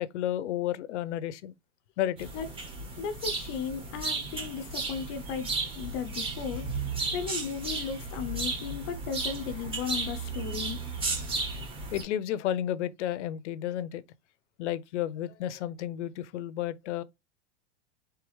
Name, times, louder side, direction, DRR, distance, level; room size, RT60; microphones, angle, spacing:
voice 1, 0.0-1.5 2.0-2.3 11.9-14.0 14.6-17.0, left 11 dB, 90° left, 0.6 m, -32 dB
sound 1, 2.2-12.0, right 3 dB, 15° right, 1.0 m, -34 dB
voice 2, 3.0-6.7 7.1-10.8, left 7 dB, 30° left, 0.5 m, -35 dB
4.7 x 3.4 x 3.1 m
supercardioid pair, 170°, 34 cm